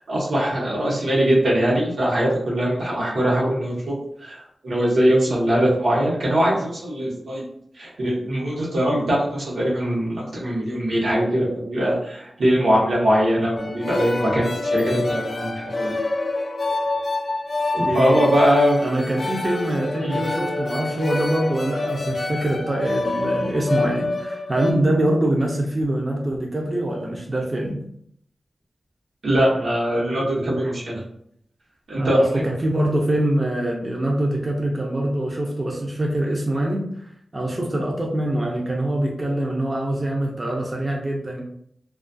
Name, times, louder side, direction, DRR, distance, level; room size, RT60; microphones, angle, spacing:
voice 1, 0.1-7.4 7.8-16.0 17.7-18.8 20.0-20.2 29.2-31.0 31.9-32.4, equal, 85° right, -6 dB, 1.0 m, -21 dB
sound 1, 13.6-24.7, left 2 dB, 50° left, 0.3 m, -27 dB
voice 2, 17.9-18.2 18.8-27.8 32.0-36.8 37.3-41.4, right 1 dB, 30° right, -2 dB, 0.5 m, -24 dB
2.3 x 2.3 x 2.5 m, 0.70 s
wide cardioid pair, 90°, 0 cm